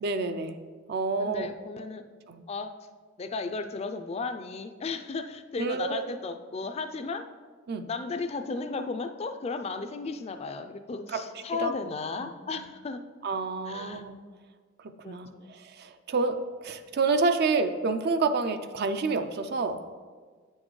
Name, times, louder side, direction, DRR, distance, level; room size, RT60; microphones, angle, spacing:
voice 1, 0.0-0.5 0.9-1.5 2.3-2.4 5.6-6.1 7.7-7.9 11.1-11.2 11.6-11.9 12.2-12.3 13.2-14.2 14.8-19.8, right 4 dB, 55° right, 9 dB, 0.4 m, -29 dB
voice 2, 1.2-2.0 2.5-2.7 3.2-7.2 7.9-13.0 13.7-14.0 15.0-15.5, left 4 dB, 30° left, 8 dB, 0.4 m, -35 dB
8.8 x 6.4 x 3.1 m, 1.5 s
head